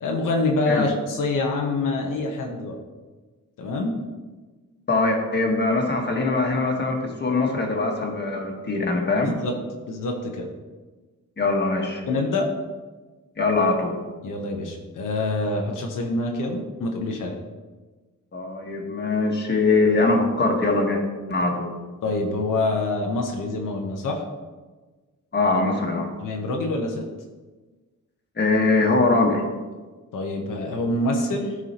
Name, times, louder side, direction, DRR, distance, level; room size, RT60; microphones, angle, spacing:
voice 1, 0.0-2.8 3.6-3.9 9.1-9.5 9.9-10.5 12.1-12.5 14.2-17.4 22.0-24.2 26.2-27.0 30.1-31.6, left 2 dB, 85° left, 1 dB, 1.1 m, -26 dB
voice 2, 4.9-9.3 11.4-12.0 13.4-14.0 18.3-21.0 21.3-21.7 25.3-26.1 28.4-29.4, left 3 dB, 35° left, 1 dB, 1.6 m, -22 dB
13.0 x 4.8 x 3.0 m, 1.3 s
cardioid pair, 95°, 31 cm